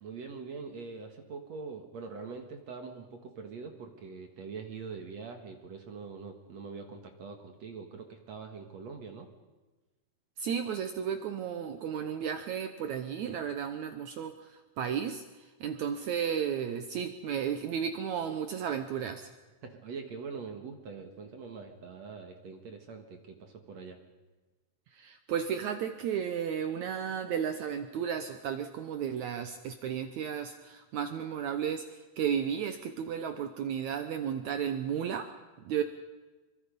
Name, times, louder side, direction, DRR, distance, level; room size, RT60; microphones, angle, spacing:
voice 1, 0.0-9.3 19.6-24.0 35.8-35.9, right 5 dB, 50° right, 4 dB, 2.4 m, -43 dB
voice 2, 10.4-19.3 24.9-35.3 35.6-35.8, right 8 dB, 85° right, 8 dB, 1.6 m, -33 dB
26.0 x 24.5 x 5.3 m, 1.2 s
omnidirectional pair, 4.6 m